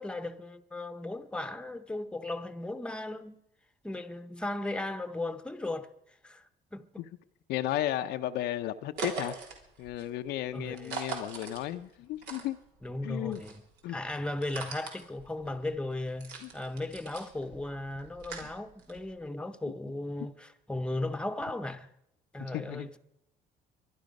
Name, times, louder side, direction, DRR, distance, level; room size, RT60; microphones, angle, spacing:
voice 1, 0.0-3.4 3.8-5.9 6.2-6.4 6.7-7.0 10.5-11.0 12.8-13.6 13.9-21.9 22.3-23.0, left 2 dB, 5° left, 0.9 m, -36 dB
voice 2, 7.5-9.4 9.8-12.6 13.0-13.4 13.8-14.0 16.4-16.5 18.4-18.5 22.5-22.9, left 13 dB, 80° left, 0.7 m, -34 dB
sound 1, 9.0-13.0 13.2-19.2, right 5 dB, 80° right, 3.4 m, -42 dB
23.5 x 10.5 x 5.3 m
cardioid pair, 110°, 17 cm